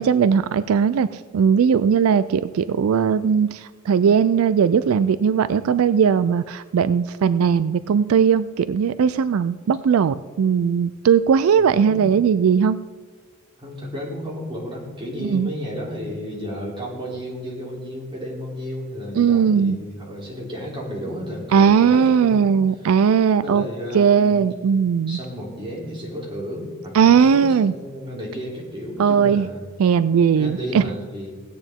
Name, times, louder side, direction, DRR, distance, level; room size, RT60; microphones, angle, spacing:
voice 1, 0.0-12.8 15.2-15.5 19.2-19.8 21.5-23.6 23.9-25.2 26.9-27.7 29.0-29.5 29.8-30.8, right 7 dB, 80° right, 14 dB, 0.4 m, -18 dB
voice 2, 13.6-22.5 23.4-24.5 25.1-29.6 30.4-31.3, equal, 25° right, -4 dB, 3.2 m, -32 dB
16.5 x 9.0 x 3.6 m, 1.5 s
head